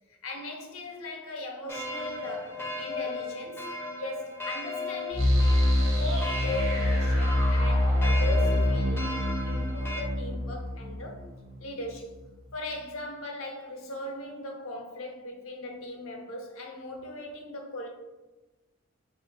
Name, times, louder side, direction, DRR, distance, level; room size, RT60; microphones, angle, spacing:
voice 1, 0.1-3.7 4.0-11.3 11.6-12.1 12.5-17.9, left 1 dB, 80° left, 2 dB, 0.6 m, -39 dB
sound 1, 1.7-10.0, left 2 dB, 10° left, 0.4 m, -36 dB
sound 2, 5.1-11.9, left 1 dB, 70° right, 1.1 m, -25 dB
3.5 x 2.4 x 2.8 m, 1.1 s
head